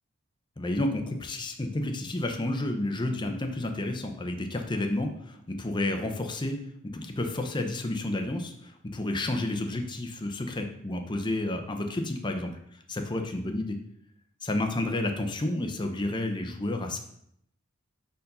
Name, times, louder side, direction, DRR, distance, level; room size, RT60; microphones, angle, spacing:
voice 1, 0.6-6.6 6.8-12.5 12.9-13.8 14.4-17.0, left 1 dB, 20° left, 4 dB, 0.6 m, -30 dB
5.1 x 4.7 x 5.3 m, 0.72 s
head